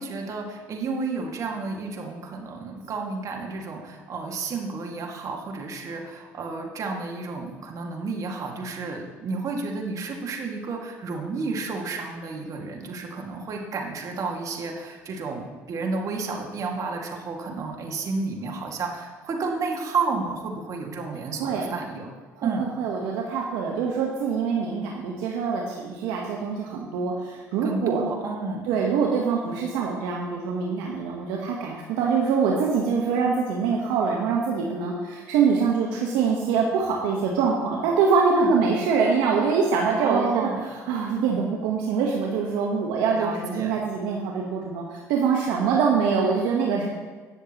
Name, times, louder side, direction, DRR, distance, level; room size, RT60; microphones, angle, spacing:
voice 1, 0.0-22.1 22.4-22.7 27.6-28.6 38.3-38.5 40.0-40.6 43.2-43.7, right 4 dB, 50° right, 1 dB, 2.0 m, -31 dB
voice 2, 21.4-21.8 22.4-28.0 28.7-46.9, right 5 dB, 75° right, -1 dB, 1.1 m, -24 dB
19.0 x 6.5 x 3.0 m, 1.4 s
hypercardioid pair, 65°, 7 cm